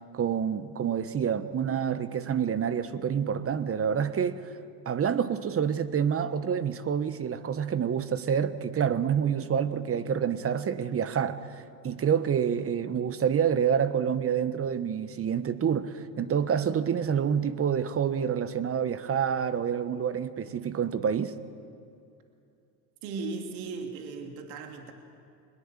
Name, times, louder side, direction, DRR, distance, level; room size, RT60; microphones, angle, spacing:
voice 1, 0.1-4.5 4.8-21.3, right 8 dB, 30° right, 1.2 m, -28 dB
voice 2, 23.0-24.9, right 4 dB, 65° right, 2.9 m, -37 dB
23.0 x 20.5 x 7.4 m
hypercardioid pair, 80°, 48 cm